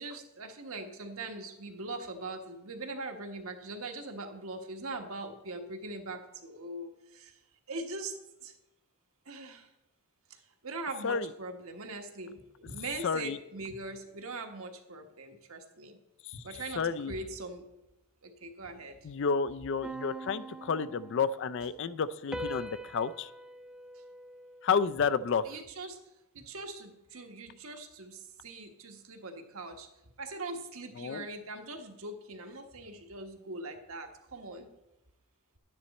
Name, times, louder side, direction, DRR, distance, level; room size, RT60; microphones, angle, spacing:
voice 1, 0.0-7.4 7.7-8.6 9.2-9.7 10.3-16.0 16.3-17.6 18.2-19.1 23.9-24.0 25.4-26.0 26.3-29.9 30.2-34.7, right 2 dB, 70° right, 4 dB, 1.3 m, -41 dB
voice 2, 13.0-13.4 16.2-16.3 16.8-17.1 19.0-23.3 24.6-25.4 31.0-31.3, left 5 dB, 55° left, 15 dB, 0.4 m, -30 dB
sound 1, 19.8-21.6 22.3-25.0, right 1 dB, 5° right, 0.5 m, -43 dB
11.0 x 9.5 x 4.2 m, 0.92 s
head